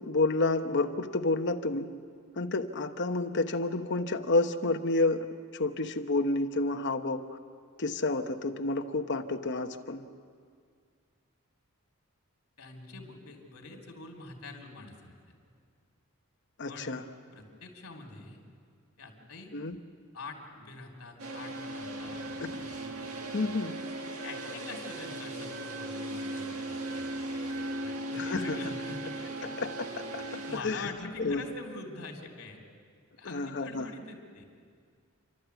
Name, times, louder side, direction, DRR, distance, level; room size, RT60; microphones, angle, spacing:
voice 1, 0.0-1.9 2.4-5.3 5.5-7.2 7.8-10.1 16.6-17.0 19.5-19.8 22.4-22.5 23.3-23.8 28.1-28.6 29.6-29.9 30.1-30.2 30.5-30.9 31.2-31.4 33.2-33.9, left 2 dB, 55° left, 6 dB, 1.0 m, -29 dB
voice 2, 12.6-15.2 16.6-16.9 17.3-18.4 19.0-19.5 20.1-22.2 24.2-29.7 30.2-32.6 33.2-34.4, left 3 dB, 75° left, 1 dB, 3.5 m, -45 dB
sound 1, 21.2-30.6, right 1 dB, 80° right, 1.9 m, -37 dB
29.5 x 12.5 x 8.3 m, 2.1 s
head